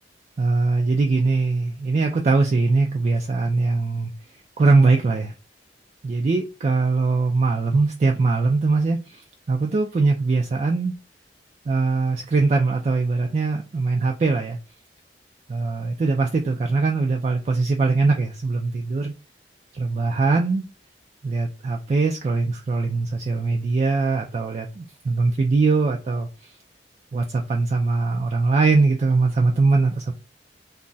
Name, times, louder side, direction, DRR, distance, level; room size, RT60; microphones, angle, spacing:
voice 1, 0.4-4.1 4.6-5.3 6.0-10.9 11.7-14.6 15.5-19.1 19.7-20.6 21.2-26.3 27.1-30.1, right 3 dB, 40° right, 0.3 m, -21 dB
2.3 x 2.0 x 3.8 m
head